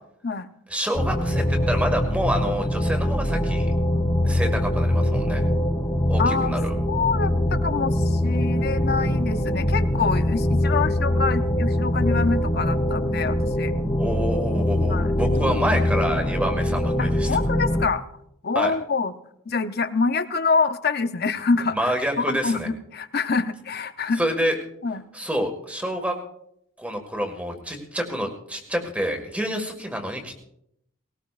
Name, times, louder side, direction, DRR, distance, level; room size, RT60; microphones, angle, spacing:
voice 1, 0.7-3.7 4.2-5.4 6.1-6.7 14.0-17.3 18.6-18.7 21.7-22.7 24.2-24.5 25.1-26.2 26.8-30.3, equal, 5° right, 3 dB, 1.8 m, -27 dB
sound 1, 0.9-17.9, left 1 dB, 20° left, 1.3 m, -23 dB
voice 2, 6.2-6.5 6.9-13.7 14.9-15.8 17.0-18.0 18.4-19.1 19.5-24.2 24.8-25.1, left 4 dB, 50° left, 10 dB, 0.7 m, -26 dB
19.5 x 18.0 x 2.5 m, 0.75 s
head